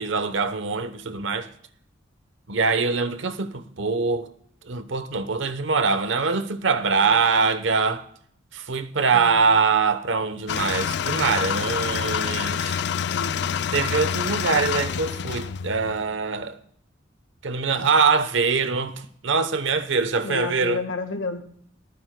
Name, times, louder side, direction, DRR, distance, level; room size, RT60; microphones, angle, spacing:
voice 1, 0.0-1.5 2.5-4.3 4.6-8.0 8.5-12.8 13.7-16.6 17.4-20.8, right 4 dB, 75° right, 0.9 m, -23 dB
sound 1, 10.5-16.2, left 7 dB, 60° left, 0.4 m, -27 dB
voice 2, 13.1-13.5 17.8-17.9 20.2-21.4, left 3 dB, 85° left, 1.5 m, -31 dB
28.5 x 9.6 x 2.2 m
head